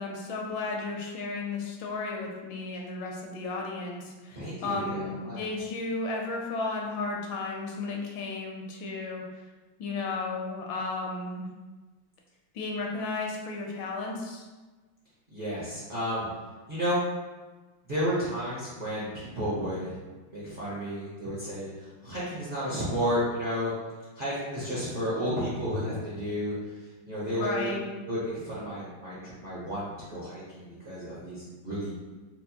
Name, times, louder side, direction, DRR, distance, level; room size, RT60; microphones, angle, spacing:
voice 1, 0.0-9.2 9.8-11.4 12.5-14.4 27.4-27.9, left 3 dB, 75° left, 0 dB, 1.3 m, -34 dB
voice 2, 4.3-5.5 15.3-16.3 16.7-17.0 17.9-20.0 20.3-23.7 24.1-26.6 27.1-27.8 28.1-31.9, equal, 55° right, -10 dB, 0.6 m, -32 dB
4.3 x 2.2 x 2.8 m, 1.2 s
omnidirectional pair, 2.1 m